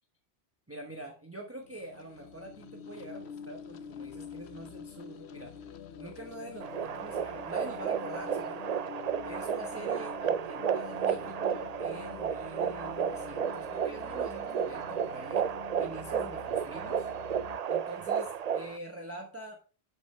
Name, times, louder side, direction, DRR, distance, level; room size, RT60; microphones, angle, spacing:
voice 1, 0.7-5.5 6.0-8.7 9.2-15.5 15.8-17.1 17.7-19.6, right 1 dB, 15° right, 2 dB, 1.2 m, -45 dB
sound 1, 1.6-17.6, left 7 dB, 85° left, 1.0 m, -46 dB
sound 2, 6.6-18.8, right 8 dB, 50° right, 0.5 m, -33 dB
12.0 x 5.7 x 3.3 m, 0.37 s
omnidirectional pair, 1.1 m